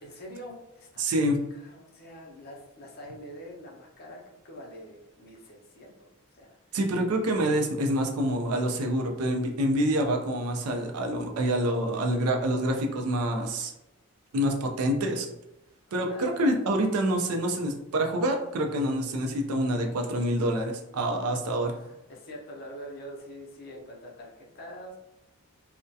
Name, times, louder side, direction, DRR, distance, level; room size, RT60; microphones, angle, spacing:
voice 1, 0.0-6.6 6.9-7.1 16.0-16.4 21.3-21.4 21.7-25.0, equal, 45° left, -1 dB, 0.5 m, -45 dB
voice 2, 1.0-1.4 6.7-13.7 14.3-15.3 15.9-21.7, right 1 dB, 85° right, 3 dB, 0.4 m, -27 dB
2.3 x 2.1 x 2.6 m, 0.92 s
head